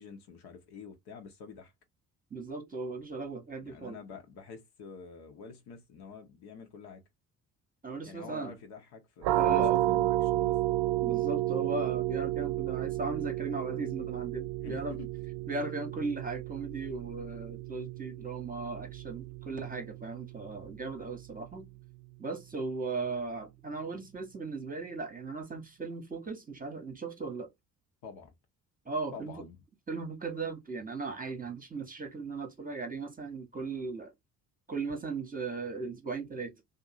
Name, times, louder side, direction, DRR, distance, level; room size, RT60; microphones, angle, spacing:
voice 1, 0.0-1.7 3.6-7.0 8.0-10.6 14.6-15.1 28.0-28.3 29.1-29.6, left 6 dB, 60° left, 1.0 m, -47 dB
voice 2, 2.3-4.0 7.8-8.5 9.3-9.8 11.0-15.0 15.5-21.7 22.2-27.5 28.9-29.4 29.9-34.1 34.7-36.5, right 3 dB, 20° right, 1.0 m, -37 dB
sound 1, 9.2-20.7, right 15 dB, 60° right, 0.6 m, -32 dB
2.7 x 2.5 x 2.6 m
hypercardioid pair, 50°, 44 cm